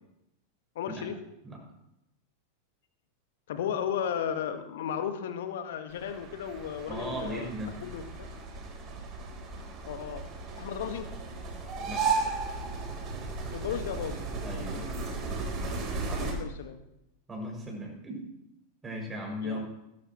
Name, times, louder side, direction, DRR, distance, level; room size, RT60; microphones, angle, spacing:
voice 1, 0.7-1.2 3.5-7.5 7.8-8.0 9.8-10.2 10.6-11.1 13.5-14.2 16.2-16.8 19.4-19.6, left 8 dB, 55° left, 8 dB, 1.5 m, -34 dB
sound 1, 5.9-16.3, right 4 dB, 35° right, 3.7 m, -35 dB
voice 2, 6.9-7.8 11.8-12.1 14.4-14.9 16.1-16.3 17.3-18.2 18.8-19.6, equal, 15° right, -1 dB, 6.2 m, -37 dB
20.5 x 12.0 x 3.1 m, 0.86 s
figure-of-eight pair, 90°, 0 cm